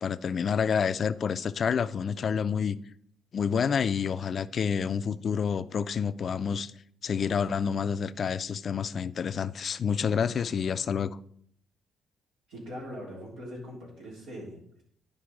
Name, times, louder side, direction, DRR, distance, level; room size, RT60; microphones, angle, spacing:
voice 1, 0.0-2.8 3.3-6.7 7.0-11.2, left 6 dB, 50° left, 0.4 m, -28 dB
voice 2, 12.5-14.8, equal, 85° right, 3.5 m, -41 dB
10.5 x 5.2 x 4.8 m
cardioid pair, 90°, 0 cm